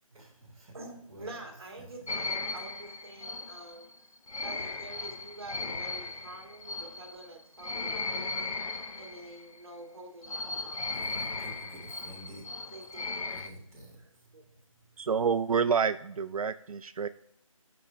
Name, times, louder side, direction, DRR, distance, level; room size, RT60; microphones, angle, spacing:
voice 1, 0.1-0.7 1.0-1.4 1.8-1.9 10.7-12.7 13.2-15.1, equal, 10° right, -10 dB, 1.3 m, -50 dB
voice 2, 0.7-3.9 4.4-8.4 9.0-10.9 12.7-13.1 14.0-14.4, right 2 dB, 45° right, 2 dB, 1.7 m, -47 dB
sound 1, 2.1-9.6 10.2-13.5, left 3 dB, 75° left, 0.7 m, -37 dB
voice 3, 15.0-17.1, right 6 dB, 85° right, 11 dB, 0.4 m, -28 dB
5.9 x 5.3 x 4.4 m, 0.74 s
figure-of-eight pair, 170°, 18 cm